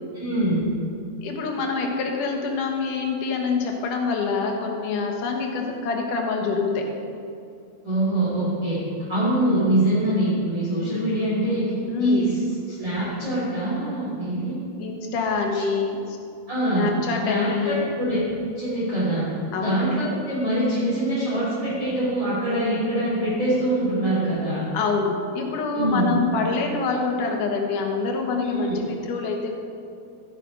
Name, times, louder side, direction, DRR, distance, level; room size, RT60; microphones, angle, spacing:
voice 1, 0.1-0.6 7.8-8.8 9.1-12.4 12.7-14.6 16.5-16.9 17.2-18.2 18.5-19.2 19.6-24.6 25.7-26.2 28.4-28.8, right 1 dB, 25° right, -10 dB, 3.1 m, -24 dB
voice 2, 1.2-6.9 11.9-12.4 14.8-16.2 16.8-17.9 19.5-19.8 24.7-29.5, left 4 dB, 75° left, 2 dB, 2.8 m, -26 dB
13.5 x 8.4 x 5.2 m, 2.5 s
omnidirectional pair, 3.8 m